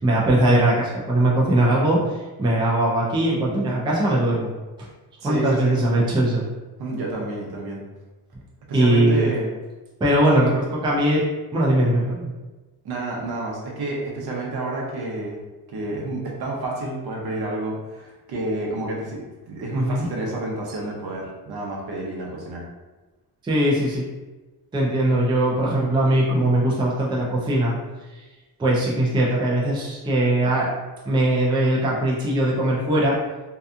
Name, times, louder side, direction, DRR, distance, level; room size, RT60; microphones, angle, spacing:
voice 1, 0.0-4.5 4.8-4.9 5.2-6.4 8.7-9.3 10.0-11.2 11.5-12.3 19.7-20.1 23.4-24.0 24.7-27.8 28.2-28.3 28.6-30.7 31.0-33.2, right 1 dB, 15° right, -4 dB, 0.3 m, -20 dB
voice 2, 5.2-5.8 6.8-7.8 8.7-9.5 12.8-15.4 15.7-22.6, right 2 dB, 65° right, -2 dB, 0.7 m, -29 dB
2.7 x 2.3 x 2.4 m, 1.2 s
wide cardioid pair, 165°, 40 cm